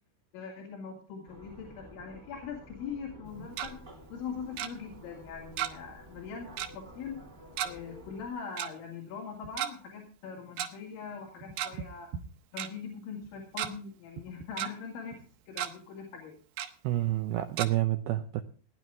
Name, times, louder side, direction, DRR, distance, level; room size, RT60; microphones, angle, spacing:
voice 1, 0.3-3.8 4.1-7.2 7.6-12.1 12.5-16.4, left 6 dB, 80° left, -1 dB, 4.8 m, -42 dB
sound 1, 1.3-8.3, equal, 25° right, 1.1 m, -51 dB
Tick-tock, 3.3-3.7 4.6-4.7 5.6-5.9 6.2-6.3 6.6-6.8 7.6-7.7 8.6-8.7 9.4-9.7 10.6-10.7 11.4-11.9 12.1-12.2 12.6-12.7 13.2-13.7 14.2-14.7 15.1-15.2 15.5-15.7 16.6-16.7 17.6-17.7, right 11 dB, 70° right, 2.6 m, -34 dB
voice 2, 16.8-18.4, right 15 dB, 85° right, 8 dB, 2.2 m, -29 dB
18.5 x 10.5 x 3.6 m, 0.39 s
omnidirectional pair, 5.3 m